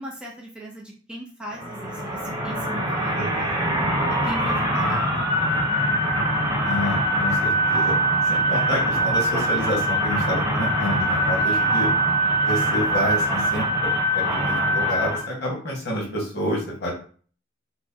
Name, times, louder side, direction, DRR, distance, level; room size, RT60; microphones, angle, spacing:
voice 1, 0.0-3.5 4.2-5.4 11.4-11.8, equal, 5° right, -3 dB, 0.6 m, -37 dB
sound 1, 1.5-15.2, right 1 dB, 25° right, 1.1 m, -23 dB
voice 2, 2.9-3.7 6.6-7.9 8.3-11.9 12.4-16.9, equal, 60° left, -2 dB, 1.4 m, -29 dB
4.6 x 2.1 x 2.8 m, 0.43 s
head